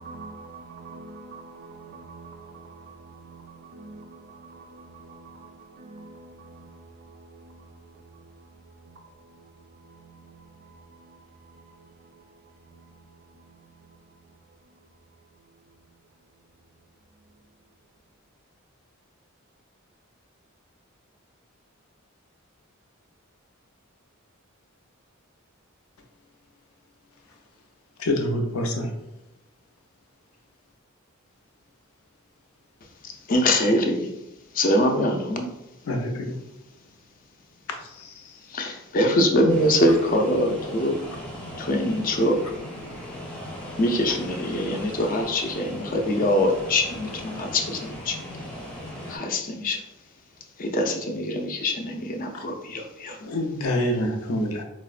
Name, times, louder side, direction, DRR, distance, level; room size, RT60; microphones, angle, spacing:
voice 1, 0.0-7.7 8.9-9.4 9.9-10.8 11.7-11.8, right 3 dB, 45° right, 0.4 m, -45 dB
voice 2, 28.0-28.9 35.9-36.3 37.8-38.1 52.3-52.4 53.2-54.6, left 1 dB, 90° left, 0.5 m, -26 dB
voice 3, 33.0-34.1 34.5-35.5 38.5-41.0 41.6-42.5 43.8-48.2 49.1-49.8 50.6-53.2, left 1 dB, 40° left, 0.4 m, -23 dB
sound 1, 39.5-49.2, equal, 5° left, 0.7 m, -38 dB
4.4 x 2.1 x 2.4 m
head